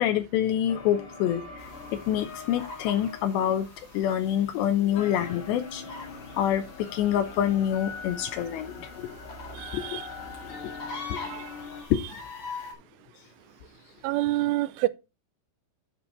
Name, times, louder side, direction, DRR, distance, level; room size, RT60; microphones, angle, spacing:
voice 1, 0.0-3.7 3.9-5.8 6.4-9.1 9.7-10.0 11.1-11.2 11.9-12.0, left 10 dB, 80° left, 2.5 m, -26 dB
sound 1, 0.7-4.6 4.9-11.8, left 4 dB, 55° left, 3.6 m, -42 dB
sound 2, 1.6-12.7, left 4 dB, 40° left, 1.9 m, -44 dB
voice 2, 9.6-10.0 11.2-11.5 14.0-14.9, right 17 dB, 85° right, 2.8 m, -28 dB
9.9 x 6.1 x 4.2 m
omnidirectional pair, 6.0 m